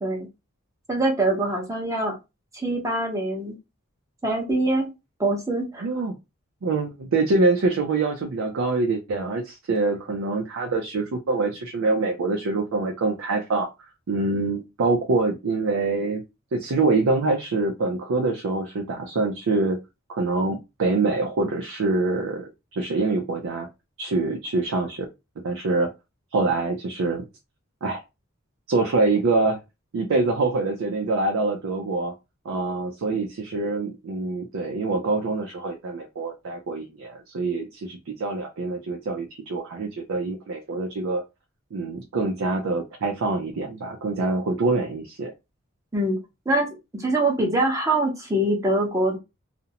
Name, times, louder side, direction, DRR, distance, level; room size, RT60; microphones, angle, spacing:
voice 1, 0.9-2.1 2.5-3.6 4.2-4.9 5.2-5.9 45.9-46.2 46.5-46.7 46.9-49.2, right 1 dB, 15° right, 0 dB, 0.8 m, -24 dB
voice 2, 5.8-6.2 6.6-13.7 14.1-16.2 16.5-19.8 20.1-23.7 24.0-25.1 25.4-25.9 26.3-27.3 27.8-28.0 28.7-29.6 29.9-32.1 32.5-41.2 41.7-45.3, right 3 dB, 90° right, 2 dB, 0.4 m, -25 dB
2.5 x 2.0 x 2.8 m, 0.24 s
head